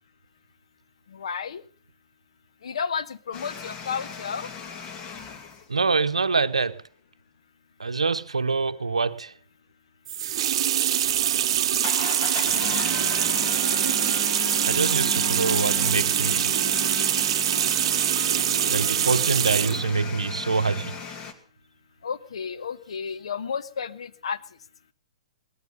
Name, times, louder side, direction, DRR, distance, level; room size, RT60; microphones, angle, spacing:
voice 1, 1.1-1.6 2.6-4.5 22.0-24.4, left 6 dB, 70° left, 1.2 m, -32 dB
sound 1, 3.3-5.6 11.8-21.3, left 6 dB, 30° left, 2.4 m, -36 dB
voice 2, 5.7-6.8 7.8-9.3 14.6-16.5 18.7-20.9, right 4 dB, 90° right, 0.7 m, -25 dB
sound 2, 10.1-19.8, right 11 dB, 55° right, 0.8 m, -24 dB
18.5 x 14.0 x 5.4 m
hypercardioid pair, 120°, 3 cm